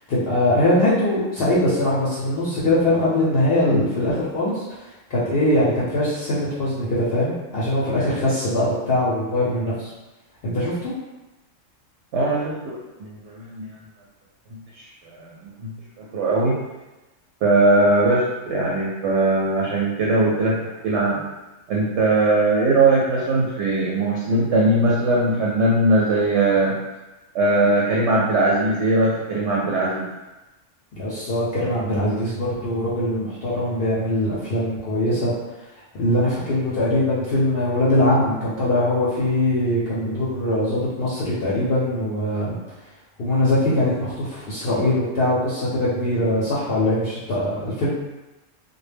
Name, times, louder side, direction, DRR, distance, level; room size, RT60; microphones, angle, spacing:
voice 1, 0.1-4.8 5.1-9.9 10.4-10.9 31.0-35.3 35.9-42.6 43.2-47.9, left 1 dB, 60° left, -8 dB, 0.7 m, -22 dB
voice 2, 12.1-13.7 15.0-15.7 16.0-16.5 17.4-20.6 20.8-21.2 21.7-26.7 27.3-30.0, right 2 dB, 70° right, -5 dB, 0.8 m, -20 dB
2.1 x 2.1 x 3.3 m, 1.1 s
omnidirectional pair, 1.3 m